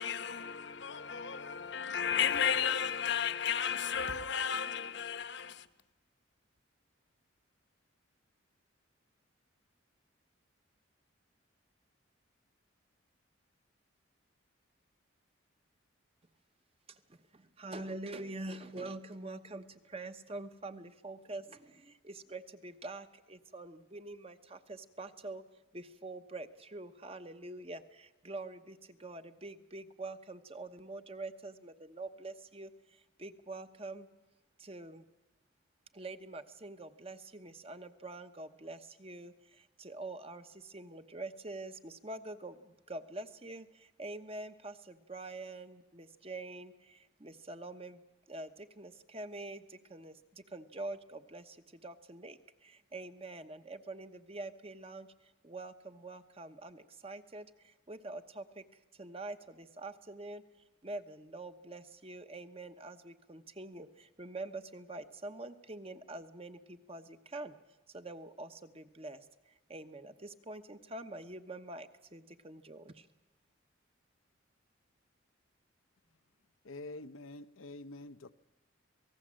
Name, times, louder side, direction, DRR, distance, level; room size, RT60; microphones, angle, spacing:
voice 1, 0.0-5.7, left 7 dB, 55° left, 1.0 m, -33 dB
voice 2, 16.9-25.4 25.7-34.1 34.6-35.1 35.9-48.0 48.3-58.6 58.9-60.4 60.8-67.5 67.9-73.1, right 2 dB, 30° right, 1.0 m, -45 dB
voice 3, 76.6-78.3, left 2 dB, 85° left, 0.8 m, -46 dB
27.0 x 18.5 x 7.6 m
head